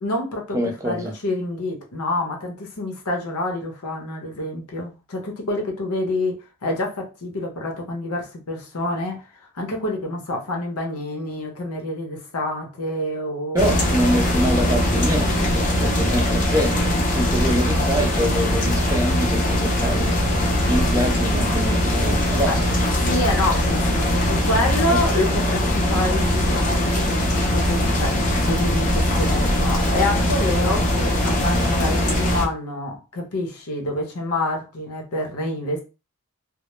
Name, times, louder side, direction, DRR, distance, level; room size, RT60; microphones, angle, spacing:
voice 1, 0.0-0.6 0.8-9.2 9.5-13.8 20.8-20.9 22.5-22.7 23.0-28.2 28.4-35.8, left 2 dB, 85° left, 0.8 m, -27 dB
voice 2, 0.5-1.1 13.5-15.5 15.8-16.8 17.1-20.2 20.7-22.5 24.9-25.0, equal, 15° right, 0.5 m, -25 dB
sound 1, 13.6-32.5, left 1 dB, 35° left, 0.5 m, -21 dB
2.1 x 2.0 x 2.9 m
head